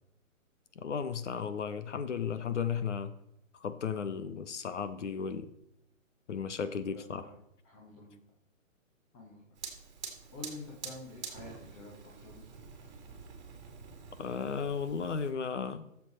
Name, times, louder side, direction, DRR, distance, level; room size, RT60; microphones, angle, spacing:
voice 1, 0.7-3.1 3.5-5.5 6.3-7.3 14.2-15.9, left 6 dB, 60° left, 11 dB, 1.3 m, -35 dB
voice 2, 6.9-7.3 7.6-8.2 9.1-9.5 10.3-12.5, left 2 dB, 20° left, -2 dB, 1.7 m, -48 dB
Fire, 9.6-15.3, right 5 dB, 35° right, 2.2 m, -47 dB
14.5 x 7.4 x 4.3 m, 0.81 s
hypercardioid pair, 170°, 40 cm